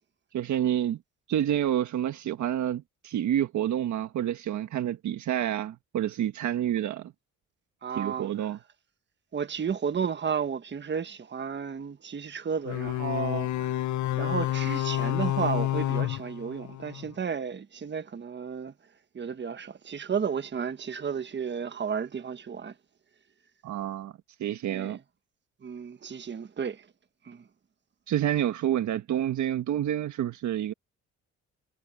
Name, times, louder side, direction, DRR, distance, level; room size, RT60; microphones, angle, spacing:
voice 1, 0.3-1.0 1.3-7.1 7.9-8.6 23.6-24.1 24.4-25.0 28.1-30.7, right 11 dB, 70° right, 1.5 m, -28 dB
voice 2, 7.8-8.5 9.3-18.7 19.1-22.7 24.7-25.0 25.6-26.8 27.2-27.4, right 6 dB, 35° right, 1.4 m, -33 dB
sound 1, 12.7-17.1, left 14 dB, 70° left, 0.8 m, -29 dB
cardioid pair, 90°, 30 cm